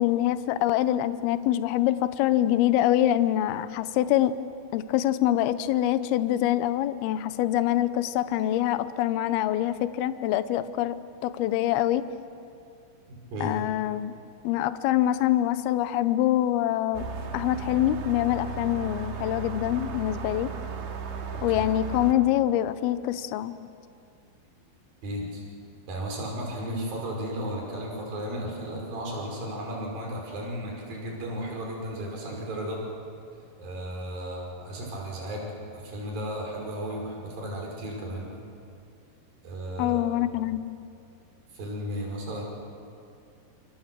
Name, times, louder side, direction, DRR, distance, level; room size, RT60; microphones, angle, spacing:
voice 1, 0.0-4.3 4.7-11.0 11.2-12.0 13.4-14.1 14.4-17.0 17.3-20.5 21.4-23.5 39.8-40.6, left 13 dB, 75° left, 12 dB, 2.3 m, -25 dB
voice 2, 13.1-13.6 21.3-21.6 25.0-25.4 25.9-32.8 33.6-38.3 39.4-40.0 40.3-40.5 41.5-42.4, equal, 50° right, -1 dB, 6.9 m, -34 dB
sound 1, 16.9-22.1, right 6 dB, 70° right, 3.9 m, -35 dB
29.0 x 27.0 x 7.5 m, 2.5 s
omnidirectional pair, 5.5 m